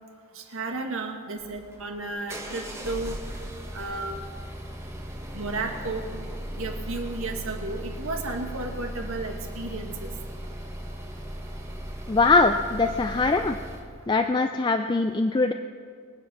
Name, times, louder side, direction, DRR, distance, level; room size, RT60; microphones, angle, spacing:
voice 1, 0.4-3.2 3.7-4.2 5.3-6.1 6.6-10.1, right 3 dB, 70° right, 3 dB, 1.8 m, -33 dB
sound 1, 1.4-13.9, equal, 10° right, 1.3 m, -37 dB
voice 2, 12.1-13.6 14.1-15.5, left 3 dB, 20° left, 6 dB, 0.3 m, -22 dB
23.0 x 8.1 x 6.2 m, 2.1 s
head